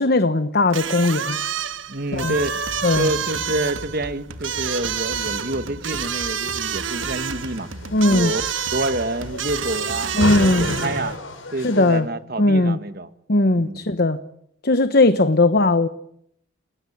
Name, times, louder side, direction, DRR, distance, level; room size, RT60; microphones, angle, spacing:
voice 1, 0.0-1.4 2.1-2.3 2.8-3.1 7.9-8.3 10.1-10.7 11.6-12.1 12.4-12.8 13.3-14.2 14.6-15.9, left 2 dB, 50° left, 11 dB, 1.1 m, -18 dB
sound 1, 0.7-11.2, right 8 dB, 70° right, 1.5 m, -29 dB
voice 2, 1.9-2.6 2.9-7.7 8.1-8.4 8.7-11.1 11.5-13.1 13.6-13.8, right 1 dB, 50° right, 10 dB, 1.8 m, -27 dB
sound 2, 2.1-10.9, right 1 dB, 90° right, 2.6 m, -38 dB
sound 3, 6.8-12.0, left 2 dB, 85° left, 6.0 m, -32 dB
29.5 x 20.0 x 8.8 m, 0.74 s
head